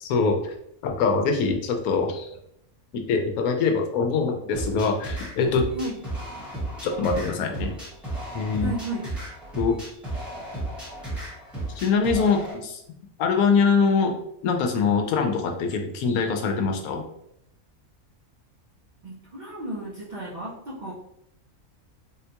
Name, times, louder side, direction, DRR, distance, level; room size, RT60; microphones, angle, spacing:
voice 1, 0.0-0.5 0.8-2.3 3.1-5.6 6.8-7.7 8.3-8.7 9.6-9.8 11.7-17.0, left 5 dB, 85° left, 4 dB, 1.1 m, -23 dB
sound 1, 4.5-12.5, right 2 dB, ahead, 0.8 m, -34 dB
voice 2, 8.6-9.1 19.0-20.9, right 1 dB, 50° right, -7 dB, 0.6 m, -34 dB
3.6 x 2.2 x 2.8 m, 0.76 s
omnidirectional pair, 1.5 m